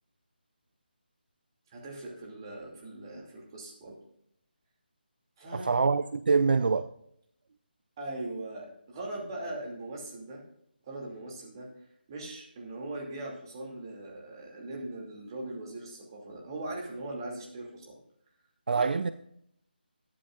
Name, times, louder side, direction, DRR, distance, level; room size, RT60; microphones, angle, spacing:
voice 1, 1.7-4.0 5.4-5.8 8.0-10.4 10.9-11.7 12.1-18.0 18.7-19.1, right 2 dB, 25° right, 2.7 m, -40 dB
voice 2, 5.5-6.9 18.7-19.1, right 4 dB, 60° right, 0.4 m, -25 dB
14.0 x 10.0 x 2.5 m
figure-of-eight pair, 165°, 6 cm